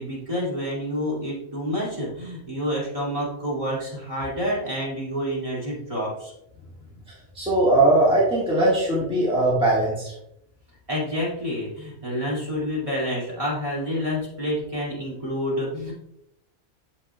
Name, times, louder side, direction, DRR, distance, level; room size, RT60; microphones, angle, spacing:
voice 1, 0.0-6.3 10.9-15.9, equal, 30° right, -5 dB, 2.4 m, -28 dB
voice 2, 7.3-10.1, right 2 dB, 5° right, -6 dB, 1.5 m, -20 dB
8.9 x 6.8 x 2.3 m, 0.79 s
omnidirectional pair, 1.2 m